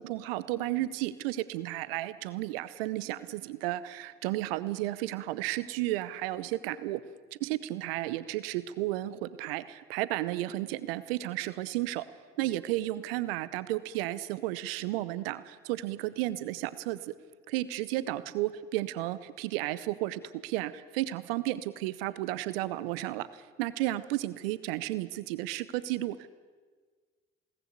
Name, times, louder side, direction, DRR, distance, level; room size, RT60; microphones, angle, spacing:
voice 1, 0.0-7.0 7.4-12.0 12.4-17.1 17.5-26.3, right 16 dB, 75° right, 17 dB, 0.7 m, -33 dB
21.5 x 18.5 x 8.2 m, 1.5 s
hypercardioid pair, 45°, 29 cm